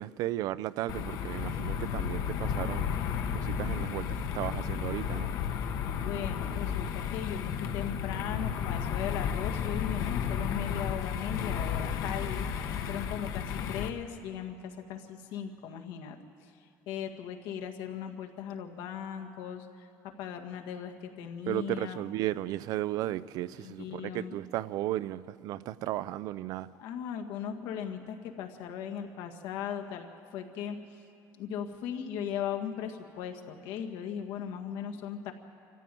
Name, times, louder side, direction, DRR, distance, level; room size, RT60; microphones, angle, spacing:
voice 1, 0.0-2.9 3.3-5.3 21.5-26.7, right 14 dB, 60° right, 0.5 m, -34 dB
sound 1, 0.9-13.9, left 7 dB, 55° left, 1.1 m, -33 dB
voice 2, 5.9-16.5 16.9-22.0 23.6-24.4 26.8-30.8 31.4-35.3, left 8 dB, 80° left, 1.9 m, -38 dB
26.0 x 15.0 x 9.2 m
cardioid pair, 170°, 7 cm